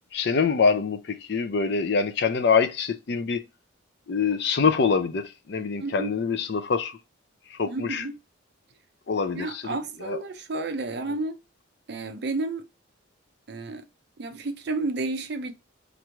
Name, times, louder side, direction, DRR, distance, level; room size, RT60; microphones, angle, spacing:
voice 1, 0.1-3.4 4.1-7.0 7.5-8.0 9.1-9.8 10.0-10.2, left 5 dB, 55° left, 0.4 m, -25 dB
voice 2, 5.8-6.1 7.7-8.2 9.3-11.4 11.9-12.6 13.5-13.8 14.2-15.5, right 3 dB, 55° right, 0.5 m, -31 dB
3.0 x 2.5 x 4.4 m
head